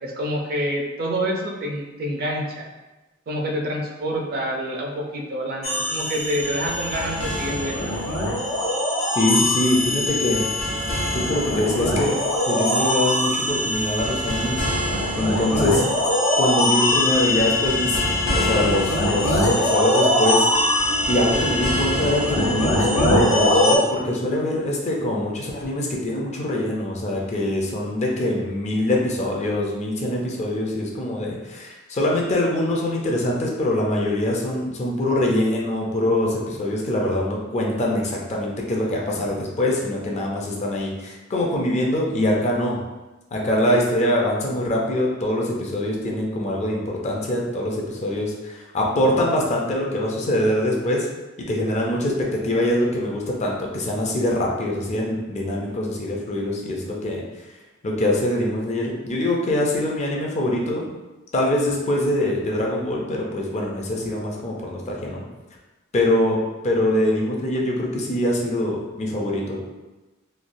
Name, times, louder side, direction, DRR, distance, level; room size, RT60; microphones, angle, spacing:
voice 1, 0.0-2.6 3.3-7.9, equal, 50° right, 0 dB, 0.5 m, -27 dB
sound 1, 5.6-23.8, left 1 dB, 85° left, 0.7 m, -22 dB
voice 2, 9.1-10.5 11.1-12.1 12.5-14.7 15.2-15.8 16.4-18.0 18.3-20.5 21.1-42.8 43.3-51.1 51.5-57.2 57.8-60.8 61.3-65.2 65.9-66.4 66.6-69.6, left 1 dB, 35° left, -2 dB, 0.5 m, -23 dB
3.1 x 2.2 x 2.6 m, 1.1 s
head